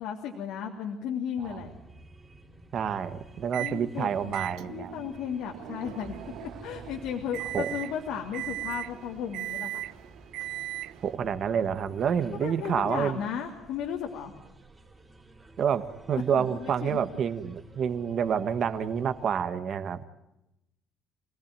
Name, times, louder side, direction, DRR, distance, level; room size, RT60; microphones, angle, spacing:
voice 1, 0.0-1.7 3.6-4.3 4.7-6.1 6.4-9.8 12.3-14.3 16.3-17.0, left 8 dB, 80° left, 1 dB, 3.1 m, -35 dB
sound 1, 1.4-19.3, right 2 dB, 10° right, 3.9 m, -52 dB
voice 2, 2.7-4.9 7.5-7.7 11.0-13.2 15.6-20.1, right 7 dB, 40° right, 11 dB, 1.5 m, -28 dB
Microwave oven, 3.5-3.8 4.3-11.2, right 15 dB, 75° right, 0.9 m, -38 dB
28.0 x 18.5 x 9.2 m, 0.89 s
cardioid pair, 165°, 0 cm